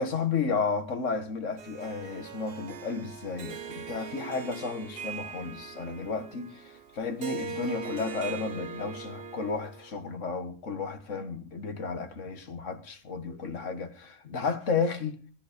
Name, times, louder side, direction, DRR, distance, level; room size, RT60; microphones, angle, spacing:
voice 1, 0.0-15.2, left 4 dB, 80° left, 1.7 m, -33 dB
Harp, 1.6-10.0, right 5 dB, 55° right, 1.1 m, -41 dB
18.0 x 11.0 x 5.1 m
omnidirectional pair, 1.3 m